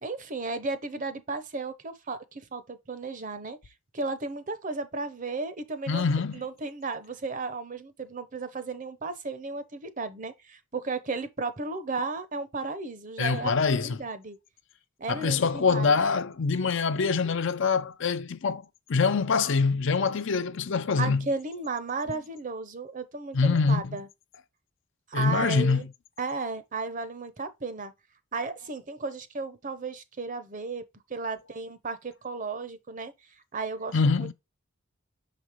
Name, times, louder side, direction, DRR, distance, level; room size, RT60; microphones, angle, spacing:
voice 1, 0.0-3.6 3.9-6.0 6.3-14.4 15.0-16.0 21.0-24.1 25.1-25.9 26.2-27.9 28.3-30.8 31.1-33.1 33.5-34.3, right 3 dB, 35° right, 0.7 m, -34 dB
voice 2, 5.9-6.4 13.2-14.0 15.1-18.6 18.9-21.3 23.3-24.0 25.1-25.9 33.9-34.3, left 4 dB, 55° left, 0.5 m, -25 dB
6.3 x 5.0 x 3.0 m
head